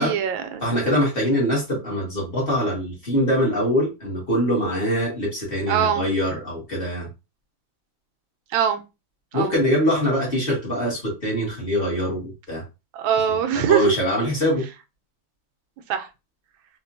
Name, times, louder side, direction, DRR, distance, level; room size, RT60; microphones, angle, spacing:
voice 1, 0.0-0.6 5.7-6.0 8.5-8.8 9.3-9.5 12.9-13.9 15.9-16.1, right 8 dB, 85° right, 7 dB, 1.4 m, -22 dB
voice 2, 0.6-7.1 9.3-12.6 13.3-14.6, equal, 30° left, -4 dB, 1.6 m, -23 dB
4.4 x 2.6 x 2.6 m, 0.26 s
omnidirectional pair, 2.1 m